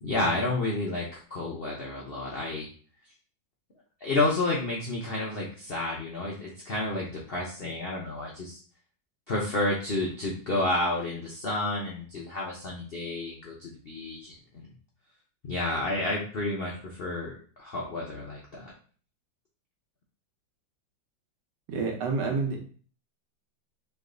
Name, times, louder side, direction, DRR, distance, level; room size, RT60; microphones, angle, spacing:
voice 1, 0.0-2.7 4.0-8.6 9.3-14.7 15.4-17.3 17.6-18.7, left 2 dB, 75° left, -3 dB, 0.5 m, -30 dB
voice 2, 21.7-22.6, right 4 dB, 70° right, 1 dB, 1.5 m, -28 dB
3.4 x 3.1 x 3.7 m, 0.43 s
omnidirectional pair, 2.0 m